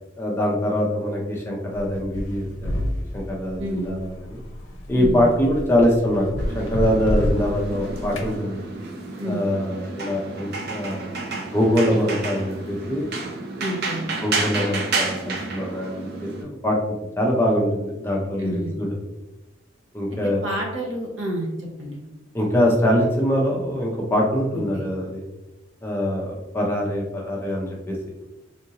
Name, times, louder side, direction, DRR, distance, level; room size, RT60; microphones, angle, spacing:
voice 1, 0.2-4.4 4.9-6.3 6.5-8.6 9.2-11.3 11.5-13.2 14.2-19.0 19.9-20.4 22.3-25.2 25.8-28.0, equal, 10° left, -2 dB, 0.5 m, -23 dB
sound 1, 1.7-8.3, left 1 dB, 70° left, 0.6 m, -29 dB
voice 2, 3.6-3.9 4.9-5.3 9.2-9.5 13.6-14.0 18.4-18.7 20.1-22.0 24.7-24.8, equal, 65° right, -1 dB, 0.9 m, -29 dB
sound 2, 6.4-16.4, right 3 dB, 50° right, 0.5 m, -31 dB
3.7 x 2.6 x 2.8 m, 0.99 s
head